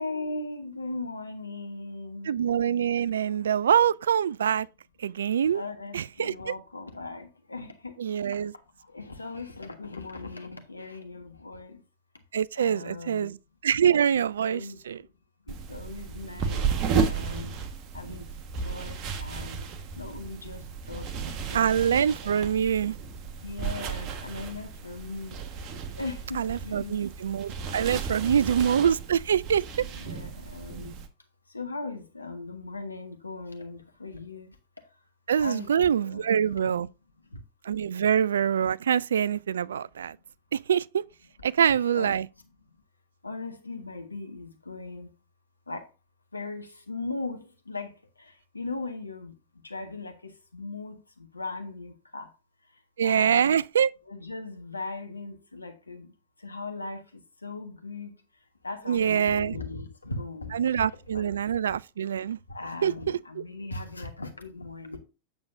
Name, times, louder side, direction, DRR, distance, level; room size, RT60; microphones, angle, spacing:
voice 1, 0.0-2.3 5.5-8.0 8.9-11.8 12.6-13.3 14.1-14.8 15.5-16.7 17.0-17.5 17.9-18.2 18.6-19.6 20.0-20.6 20.9-21.1 21.5-21.6 22.2-22.5 23.4-25.3 26.0-27.0 28.2-28.7 29.8-30.9 31.5-34.5 35.4-35.7 36.0-36.4 41.9-42.1 43.2-45.1 45.7-45.8 46.3-47.9 48.5-49.3 49.6-51.0 51.3-52.3 53.0-53.6 54.1-56.1 56.4-57.0 57.4-58.1 58.6-60.7 61.1-61.2 62.5-65.0, left 3 dB, 80° left, 1.4 m, -38 dB
voice 2, 2.2-4.7 5.0-5.6 5.9-6.5 8.0-8.5 12.3-13.4 13.6-15.0 21.5-23.0 26.3-29.9 35.3-36.9 37.6-40.2 40.5-41.0 41.4-42.3 53.0-53.9 58.9-59.6 60.5-62.4 62.8-63.4, right 8 dB, 65° right, 0.3 m, -25 dB
sound 1, 15.5-31.1, right 5 dB, 40° right, 1.4 m, -34 dB
8.7 x 7.4 x 2.6 m
figure-of-eight pair, 90°, 0 cm